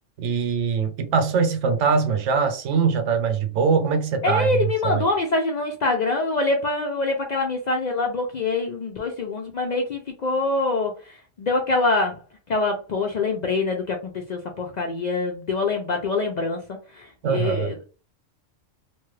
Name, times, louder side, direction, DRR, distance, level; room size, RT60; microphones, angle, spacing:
voice 1, 0.2-5.1 17.2-17.7, right 5 dB, 75° right, 0.9 m, -22 dB
voice 2, 4.2-12.2 12.5-17.8, left 3 dB, 80° left, 0.3 m, -25 dB
3.0 x 2.3 x 3.1 m
omnidirectional pair, 1.3 m